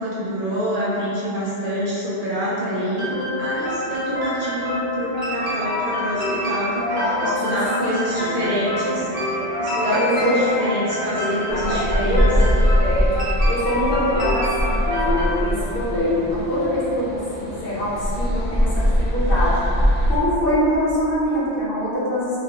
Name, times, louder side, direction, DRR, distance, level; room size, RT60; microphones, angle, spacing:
voice 1, 0.0-12.3, equal, 60° right, -9 dB, 0.6 m, -26 dB
sound 1, 3.0-15.3, left 1 dB, 75° right, 1.1 m, -27 dB
voice 2, 6.9-8.4 9.8-10.5 11.5-13.1 13.4-19.6 20.1-22.3, equal, 60° left, -9 dB, 0.9 m, -24 dB
Wind instrument woodwind instrument, 8.0-12.0, equal, 10° left, 0.6 m, -37 dB
sound 2, 11.5-20.2, equal, 20° right, 0.9 m, -22 dB
2.4 x 2.3 x 2.7 m, 2.9 s
omnidirectional pair, 1.1 m